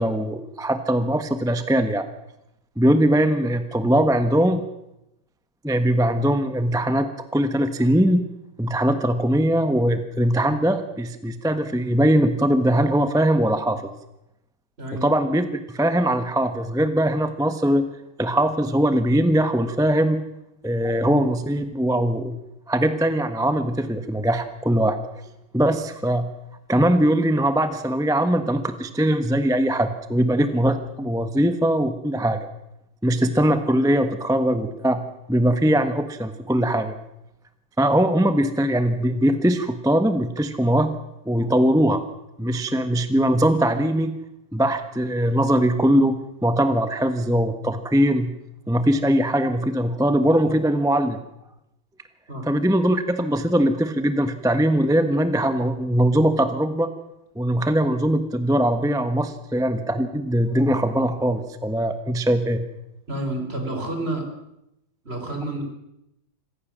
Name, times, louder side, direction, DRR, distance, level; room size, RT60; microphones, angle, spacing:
voice 1, 0.0-2.0 2.8-4.6 5.6-8.2 8.6-13.9 14.9-17.8 18.2-20.2 20.6-22.3 22.7-25.0 25.5-26.3 26.7-32.5 33.0-35.0 35.3-36.9 37.8-40.9 41.2-42.0 42.4-44.1 44.5-48.3 48.7-51.2 52.5-56.9 57.3-62.6, right 1 dB, ahead, 9 dB, 0.9 m, -21 dB
voice 2, 63.1-64.3 65.0-65.6, right 1 dB, 25° right, 4 dB, 4.6 m, -29 dB
26.5 x 15.5 x 7.5 m, 0.85 s
omnidirectional pair, 2.4 m